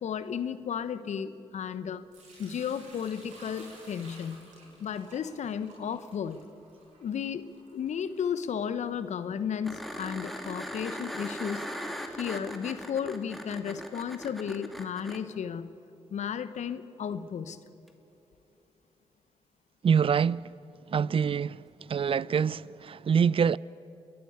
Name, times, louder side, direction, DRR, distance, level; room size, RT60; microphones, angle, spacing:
voice 1, 0.0-2.0 2.4-4.4 4.8-6.4 7.0-7.5 7.7-11.7 12.1-15.8 16.1-17.6, left 7 dB, 65° left, 1.0 m, -34 dB
Sink (filling or washing) / Liquid, 2.1-9.0, right 2 dB, 75° right, 5.7 m, -54 dB
sound 1, 9.6-15.2 17.9-18.0, equal, ahead, 2.5 m, -39 dB
voice 2, 19.8-20.5 20.9-23.6, right 7 dB, 45° right, 0.4 m, -25 dB
30.0 x 10.5 x 8.8 m
hypercardioid pair, 40°, 13 cm